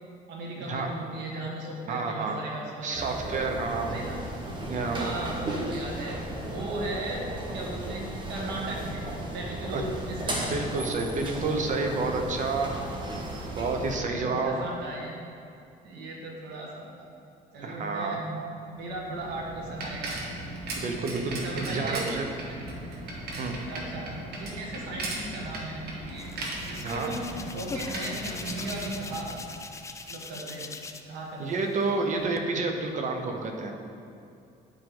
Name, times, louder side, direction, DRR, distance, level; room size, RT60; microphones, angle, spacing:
voice 1, 0.3-3.3 3.7-4.2 4.8-9.0 9.3-10.7 13.8-15.1 15.8-17.1 17.5-20.2 21.3-22.1 22.4-22.6 23.7-24.1 24.4-26.3 26.6-29.3 30.1-30.7 31.1-31.7, right 2 dB, 85° right, -2 dB, 1.4 m, -37 dB
voice 2, 1.9-2.4 2.8-3.9 4.7-5.1 9.7-9.8 10.5-12.7 13.6-14.6 17.6-18.2 20.8-22.3 23.4-23.5 26.8-27.1 31.4-33.8, right 3 dB, 45° right, 3 dB, 1.0 m, -29 dB
sound 1, 2.9-14.0, right 1 dB, 30° right, 1.2 m, -35 dB
Bicycle, 18.8-29.7, right 2 dB, 70° right, 1.5 m, -38 dB
Hands, 26.2-31.2 31.5-32.4, left 3 dB, 15° left, 0.4 m, -41 dB
9.8 x 4.9 x 3.9 m, 2.6 s
cardioid pair, 110°, 17 cm